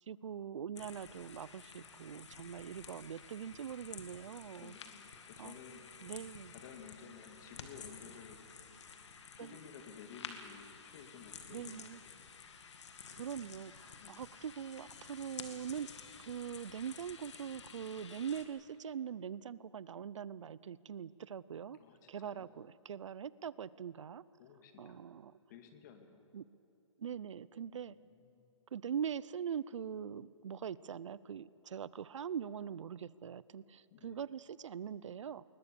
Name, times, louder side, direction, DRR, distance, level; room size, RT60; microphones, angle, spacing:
voice 1, 0.1-4.7 5.4-5.6 6.0-6.5 9.4-9.5 11.5-12.0 13.1-15.9 16.2-21.8 22.1-24.2 24.8-25.4 26.3-26.4 27.0-28.0 28.7-35.4, right 8 dB, 75° right, 20 dB, 0.6 m, -42 dB
sound 1, 0.8-18.5, left 6 dB, 65° left, 2.2 m, -52 dB
voice 2, 4.6-5.9 6.5-8.8 9.4-12.3 13.3-13.6 14.0-14.4 21.7-22.5 24.4-25.2 25.5-26.3 27.9-28.4 33.9-34.2, left 6 dB, 35° left, 6 dB, 2.1 m, -55 dB
21.0 x 20.5 x 6.9 m, 2.7 s
hypercardioid pair, 155°, 16 cm